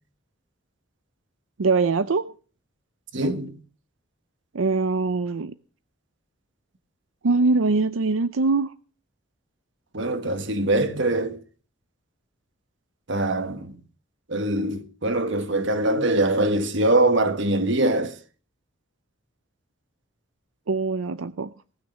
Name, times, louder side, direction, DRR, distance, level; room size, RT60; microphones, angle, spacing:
voice 1, 1.6-2.3 4.5-5.5 7.2-8.7 20.7-21.5, right 3 dB, 90° right, 0.6 m, -22 dB
voice 2, 3.1-3.5 9.9-11.4 13.1-13.8 14.3-18.1, right 2 dB, 65° right, 1.5 m, -23 dB
18.5 x 6.5 x 7.2 m
head